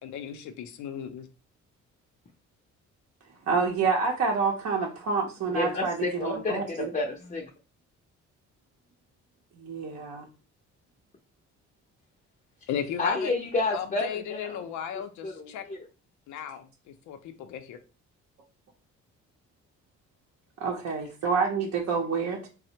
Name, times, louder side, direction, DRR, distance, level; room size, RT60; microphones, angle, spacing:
voice 1, 0.0-1.3 12.7-13.3 13.7-15.6 16.3-17.8, left 8 dB, 75° left, 7 dB, 0.5 m, -36 dB
voice 2, 3.5-5.9 6.2-6.9 9.6-10.2 20.6-22.5, right 5 dB, 60° right, -1 dB, 0.6 m, -28 dB
voice 3, 5.5-7.5 13.0-14.6 14.9-15.8, left 3 dB, 25° left, 1 dB, 0.5 m, -30 dB
4.1 x 2.0 x 2.8 m, 0.33 s
cardioid pair, 90°, 30 cm